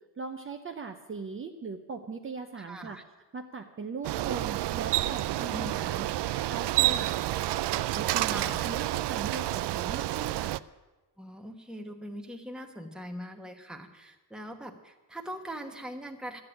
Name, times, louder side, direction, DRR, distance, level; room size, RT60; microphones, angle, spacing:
voice 1, 0.2-3.0 3.3-10.6, right 4 dB, 30° right, 4 dB, 0.7 m, -40 dB
voice 2, 2.6-3.0 5.5-5.7 8.2-8.7 11.2-16.4, equal, ahead, 3 dB, 1.1 m, -41 dB
Bicycle, 4.0-10.6, right 15 dB, 80° right, 0.5 m, -29 dB
13.5 x 8.8 x 9.9 m, 1.2 s
wide cardioid pair, 175°, 41 cm